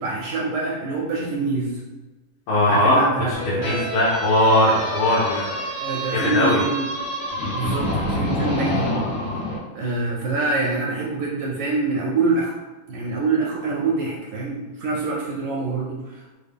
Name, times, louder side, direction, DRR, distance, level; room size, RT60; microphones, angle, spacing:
voice 1, 0.0-1.8 2.7-3.9 5.8-6.9 7.5-9.1 9.7-12.5 12.9-16.3, right 3 dB, 75° right, -2 dB, 1.1 m, -25 dB
voice 2, 2.5-3.1 3.6-5.5 6.1-6.6, left 1 dB, 80° left, -8 dB, 1.6 m, -19 dB
sound 1, 3.3-9.6, equal, 65° left, 1.6 m, -27 dB
3.7 x 2.3 x 3.3 m, 1.2 s
omnidirectional pair, 2.4 m